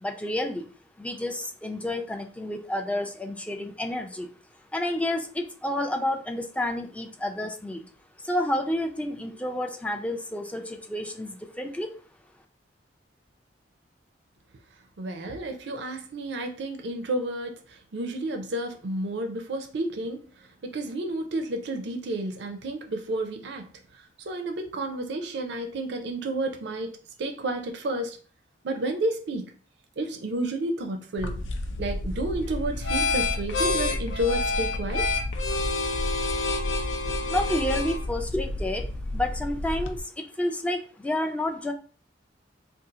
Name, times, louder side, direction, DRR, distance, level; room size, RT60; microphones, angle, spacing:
voice 1, 0.0-0.7 1.0-4.3 4.7-7.9 8.2-11.9 37.3-41.7, left 1 dB, 5° left, 0.3 m, -30 dB
voice 2, 15.0-20.3 20.6-23.7 24.3-28.2 28.6-29.5 30.0-31.4 31.8-35.1, right 1 dB, 65° right, 0.5 m, -31 dB
sound 1, 31.2-40.0, left 2 dB, 80° left, 0.4 m, -28 dB
2.6 x 2.4 x 3.8 m
head